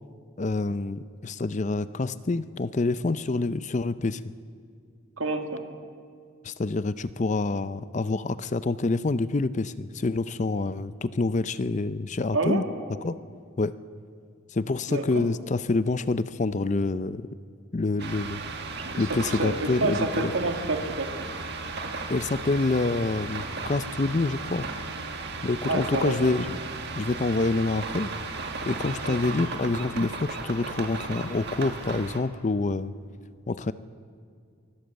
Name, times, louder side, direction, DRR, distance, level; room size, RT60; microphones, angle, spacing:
voice 1, 0.4-4.2 6.4-12.6 13.0-13.2 13.6-13.7 14.5-17.3 17.7-18.4 19.0-20.3 22.1-24.7 25.4-26.6 27.0-28.1 28.6-32.9 33.5-33.7, left 3 dB, 35° left, 14 dB, 0.5 m, -27 dB
voice 2, 5.2-5.6 12.3-12.6 14.9-15.3 18.8-21.3 25.7-26.2 29.1-29.2, right 2 dB, 70° right, 5 dB, 2.1 m, -28 dB
sound 1, 18.0-32.2, right 3 dB, 50° right, 1.8 m, -35 dB
23.5 x 15.5 x 7.8 m, 2.3 s
head